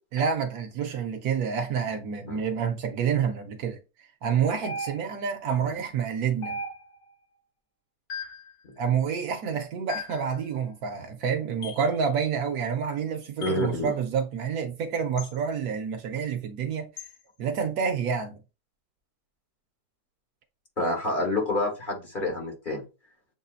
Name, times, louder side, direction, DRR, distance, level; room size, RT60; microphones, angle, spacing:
voice 1, 0.1-3.8 4.2-6.6 8.8-16.9 17.4-18.4, right 7 dB, 70° right, 1.1 m, -28 dB
sound 1, 4.6-5.3 6.4-7.1 8.1-8.5 9.9-10.3 11.6-11.9 13.4-13.7 15.2-15.4 17.0-17.2, left 1 dB, 55° left, 1.4 m, -37 dB
voice 2, 13.4-13.9 20.8-22.8, left 2 dB, 30° left, 1.3 m, -28 dB
7.3 x 2.7 x 2.4 m
omnidirectional pair, 1.8 m